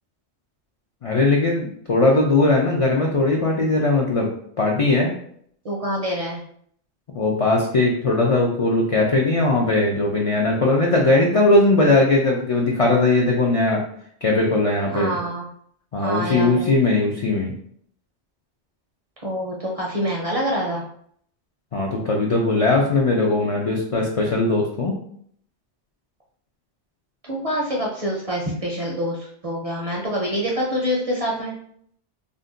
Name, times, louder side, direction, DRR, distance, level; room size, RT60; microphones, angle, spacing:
voice 1, 1.0-4.3 4.6-5.1 7.1-13.8 14.2-15.2 15.9-17.5 21.7-24.9, left 2 dB, 60° left, -2 dB, 0.3 m, -19 dB
voice 2, 5.6-6.4 14.9-15.5 16.0-16.7 19.2-20.8 27.2-31.5, equal, 45° right, -3 dB, 0.5 m, -26 dB
2.6 x 2.1 x 3.7 m, 0.64 s
omnidirectional pair, 1.1 m